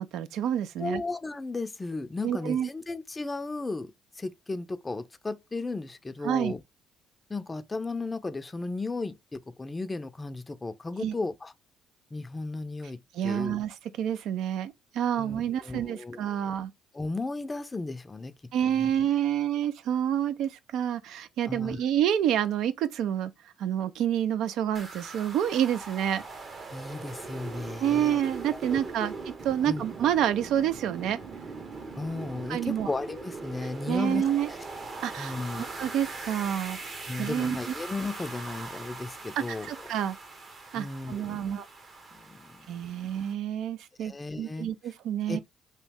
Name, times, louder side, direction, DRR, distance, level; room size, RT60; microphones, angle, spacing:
voice 1, 0.0-1.0 2.2-2.7 6.2-6.5 11.0-11.1 13.1-16.7 18.5-23.3 23.6-26.2 27.8-29.1 29.4-31.2 32.5-32.9 33.9-34.5 35.0-35.3 35.8-36.8 37.2-37.6 39.5-40.2 40.7-41.7 42.7-45.4, right 10 dB, 75° right, 0.3 m, -28 dB
voice 2, 0.8-6.6 7.3-11.5 12.1-13.6 15.2-16.5 16.9-18.9 21.5-21.8 26.7-28.2 28.5-29.1 29.6-29.8 31.9-34.6 35.2-35.6 37.1-39.7 40.7-41.4 42.1-43.1 44.0-44.7 45.3-45.4, left 3 dB, 20° left, 0.4 m, -35 dB
sound 1, 24.7-43.3, right 3 dB, 45° right, 0.9 m, -41 dB
3.0 x 2.7 x 3.4 m
cardioid pair, 85°, 0 cm